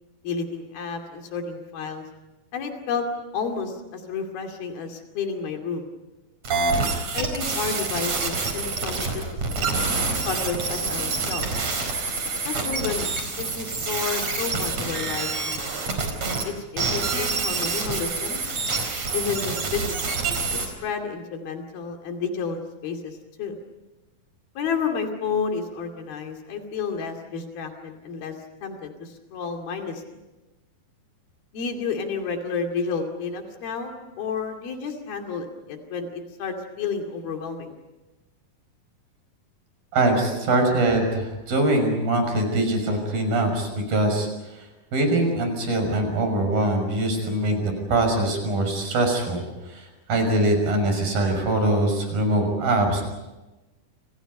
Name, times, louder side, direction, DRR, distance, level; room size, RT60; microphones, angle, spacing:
voice 1, 0.2-2.0 2.5-3.0 3.3-5.9 7.1-9.4 10.3-11.5 12.4-13.1 13.4-15.8 16.5-18.4 19.1-20.1 20.5-23.6 24.6-28.3 28.6-30.0 31.5-37.7, left 5 dB, 90° left, 3 dB, 4.5 m, -31 dB
sound 1, 6.4-16.5 16.8-20.7, right 4 dB, 50° right, 5.6 m, -27 dB
voice 2, 39.9-44.7 44.9-53.0, right 2 dB, 75° right, 5 dB, 7.8 m, -23 dB
30.0 x 28.0 x 5.5 m, 1.1 s
omnidirectional pair, 4.1 m